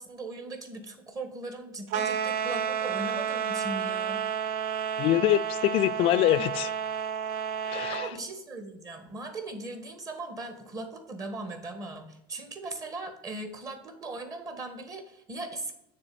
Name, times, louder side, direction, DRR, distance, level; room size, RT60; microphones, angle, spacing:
voice 1, 0.0-4.6 7.9-15.7, right 2 dB, 30° right, 1.5 m, -39 dB
sound 1, 1.9-8.1, right 8 dB, 65° right, 0.6 m, -31 dB
voice 2, 5.0-6.7 7.7-8.1, left 14 dB, 50° left, 0.4 m, -24 dB
6.6 x 3.5 x 6.0 m
supercardioid pair, 105°, 12 cm